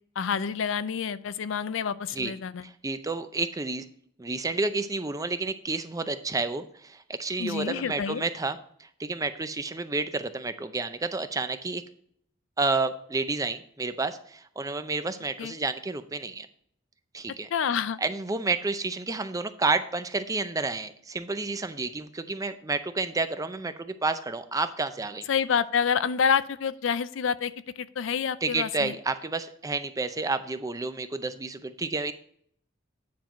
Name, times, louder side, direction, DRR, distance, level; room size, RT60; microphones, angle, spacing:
voice 1, 0.2-2.6 7.4-8.2 15.4-15.5 17.5-18.0 25.3-28.9, left 7 dB, 70° left, 15 dB, 0.4 m, -28 dB
voice 2, 2.6-3.9 4.2-11.8 12.6-16.5 17.1-17.5 18.0-25.3 28.4-32.1, right 3 dB, 20° right, 10 dB, 0.5 m, -30 dB
9.4 x 4.5 x 5.1 m, 0.63 s
head